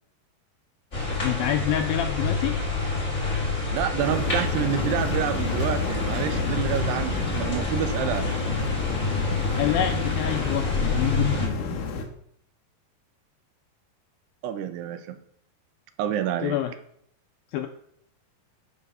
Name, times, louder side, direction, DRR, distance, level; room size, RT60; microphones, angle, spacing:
sound 1, 0.9-11.5, left 3 dB, 20° left, 3.3 m, -28 dB
voice 1, 1.1-2.5 9.6-11.6 16.4-16.7 17.5-17.7, left 11 dB, 80° left, 6 dB, 2.1 m, -27 dB
voice 2, 3.7-8.3 14.4-15.2 16.0-16.6, right 10 dB, 80° right, 10 dB, 2.8 m, -28 dB
sound 2, 4.0-12.0, left 3 dB, 65° left, 2.5 m, -30 dB
9.9 x 4.6 x 6.5 m, 0.69 s
omnidirectional pair, 4.8 m